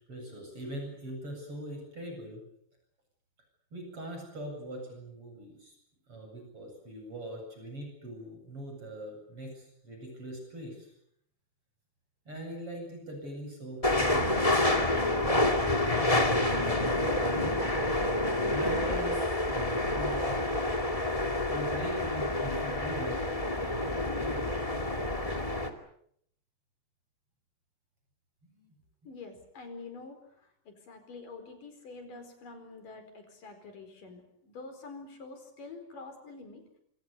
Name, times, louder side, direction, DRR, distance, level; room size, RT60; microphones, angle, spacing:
voice 1, 0.1-2.4 3.7-5.8 6.1-10.9 12.3-14.5 14.7-16.6 17.1-17.6 18.5-20.5 21.5-23.3 23.5-24.5 28.5-28.8, right 1 dB, 35° right, 3 dB, 9.1 m, -41 dB
sound 1, 13.8-25.7, left 1 dB, 15° left, 1.7 m, -28 dB
voice 2, 29.0-36.6, left 3 dB, 65° left, 7 dB, 6.2 m, -47 dB
27.5 x 27.0 x 6.9 m, 0.69 s
omnidirectional pair, 4.1 m